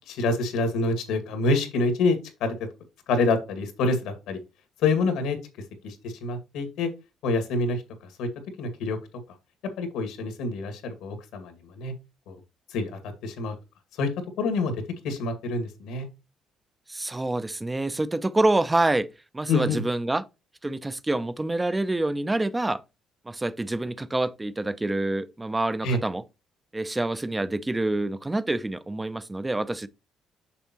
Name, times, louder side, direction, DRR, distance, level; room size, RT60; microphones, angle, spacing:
voice 1, 0.1-2.5 3.1-4.4 4.8-5.4 5.8-6.9 7.2-8.3 8.6-9.0 9.8-11.9 12.3-12.4 12.7-13.6 14.0-14.1 14.4-14.7 15.0-16.1 19.5-19.8 25.8-26.0, left 3 dB, 85° left, 2.0 m, -27 dB
voice 2, 16.9-19.1 19.3-20.2 20.6-22.8 23.3-26.2 26.7-29.9, right 2 dB, 15° right, 0.5 m, -26 dB
6.9 x 6.3 x 3.0 m
cardioid pair, 105°, 0 cm